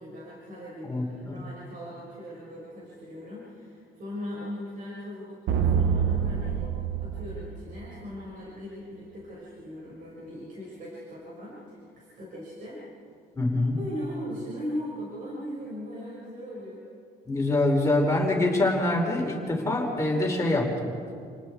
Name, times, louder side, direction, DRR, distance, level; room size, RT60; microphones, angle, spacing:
voice 1, 0.0-6.7 7.0-12.8 13.7-16.9, equal, 55° right, -5 dB, 6.2 m, -39 dB
voice 2, 0.8-1.4 13.3-13.8 17.3-20.9, left 2 dB, 15° left, -1 dB, 4.9 m, -25 dB
sound 1, 5.5-8.2, right 7 dB, 90° right, 1.2 m, -26 dB
29.5 x 19.5 x 4.8 m, 2.3 s
cardioid pair, 110°, 17 cm